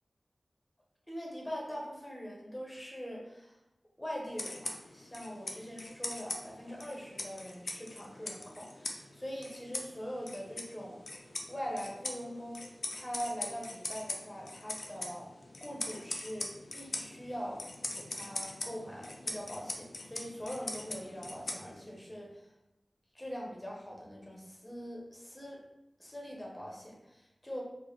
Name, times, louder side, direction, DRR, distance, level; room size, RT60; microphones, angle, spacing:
voice 1, 1.1-3.6 4.0-11.0 11.5-12.6 12.9-15.3 15.6-17.6 17.9-22.3 23.1-25.6 26.0-27.6, equal, 15° left, -3 dB, 1.0 m, -42 dB
sound 1, 4.3-22.0, left 2 dB, 80° left, 0.4 m, -42 dB
3.6 x 2.2 x 3.2 m, 0.92 s
wide cardioid pair, 55°, 0 cm